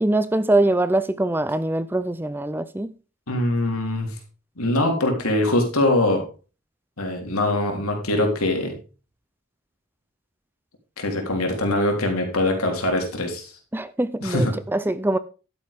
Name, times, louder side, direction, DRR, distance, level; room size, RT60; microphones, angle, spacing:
voice 1, 0.0-2.9 13.7-15.2, right 1 dB, 10° right, 0.4 m, -23 dB
voice 2, 3.3-4.1 4.6-6.2 7.0-8.8 11.0-13.5 14.2-14.6, left 1 dB, 80° left, 3.5 m, -22 dB
12.0 x 9.0 x 3.6 m
head